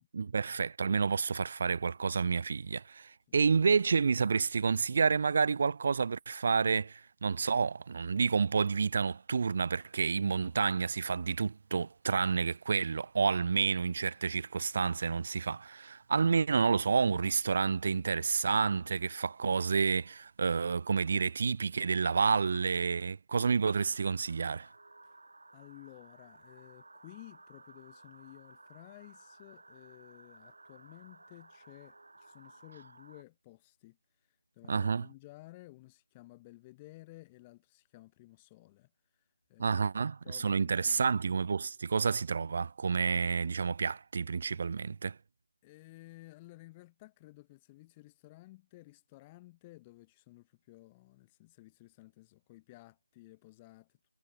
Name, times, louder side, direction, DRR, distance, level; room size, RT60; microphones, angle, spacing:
voice 1, 0.0-24.7 34.7-35.1 39.6-45.2, right 5 dB, 35° right, 0.6 m, -29 dB
sound 1, 23.6-33.2, right 2 dB, 55° right, 2.7 m, -57 dB
voice 2, 25.5-39.9 40.2-41.1 45.6-54.0, left 20 dB, 15° left, 1.3 m, -55 dB
figure-of-eight pair, 160°, 0 cm